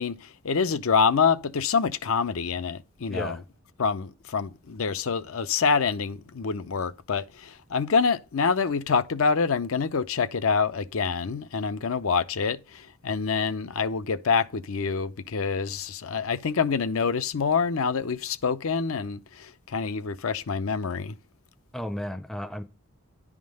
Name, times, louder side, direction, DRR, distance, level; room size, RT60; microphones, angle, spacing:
voice 1, 0.0-3.4 3.8-21.1, left 5 dB, 75° left, 0.6 m, -26 dB
voice 2, 3.1-3.4 21.7-22.6, equal, ahead, 0.5 m, -33 dB
10.5 x 3.7 x 6.3 m
head